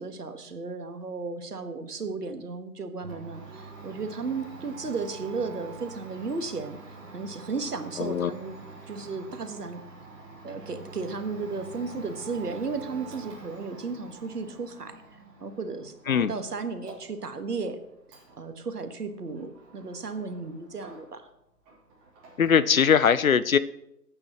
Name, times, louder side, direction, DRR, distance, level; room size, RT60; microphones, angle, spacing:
voice 1, 0.0-6.8 7.1-8.6 8.9-9.8 10.4-15.0 15.4-17.8 18.4-21.3, right 4 dB, 70° right, 8 dB, 1.7 m, -34 dB
Domestic sounds home sounds, 3.0-21.3 21.6-22.7, right 3 dB, 20° right, 3.3 m, -46 dB
voice 2, 8.0-8.3 16.1-16.3 22.4-23.6, left 7 dB, 55° left, 15 dB, 0.7 m, -21 dB
18.0 x 8.9 x 3.0 m, 0.83 s
figure-of-eight pair, 145°, 49 cm